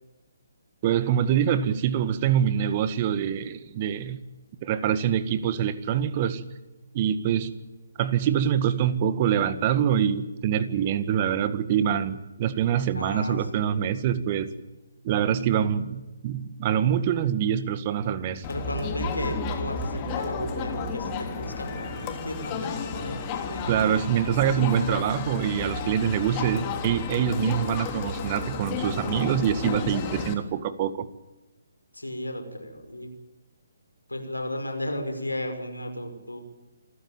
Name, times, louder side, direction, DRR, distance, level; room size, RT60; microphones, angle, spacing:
voice 1, 0.8-4.2 4.6-6.4 6.9-7.6 8.0-14.5 15.0-18.5 23.7-31.1, right 9 dB, 30° right, 12 dB, 1.8 m, -25 dB
voice 2, 12.9-13.8 18.5-23.8 31.9-33.1 34.1-36.4, left 1 dB, 90° left, 5 dB, 5.9 m, -34 dB
Crowd, 18.4-30.3, left 5 dB, 25° left, 3.2 m, -32 dB
27.5 x 15.0 x 9.2 m, 1.1 s
figure-of-eight pair, 140°, 0 cm